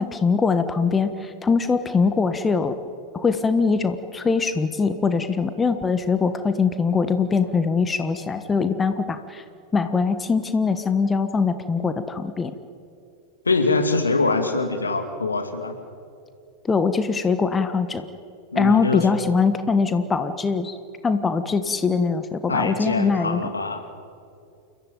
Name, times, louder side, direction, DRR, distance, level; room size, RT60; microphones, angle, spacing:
voice 1, 0.0-2.7 3.1-9.4 9.7-12.5 16.6-18.1 18.5-20.8 21.0-23.4, left 5 dB, 15° left, 10 dB, 1.4 m, -22 dB
voice 2, 13.5-15.8 18.5-19.1 22.5-23.8, left 3 dB, 75° left, 5 dB, 2.8 m, -23 dB
29.5 x 14.5 x 9.3 m, 2.5 s
figure-of-eight pair, 90°, 0 cm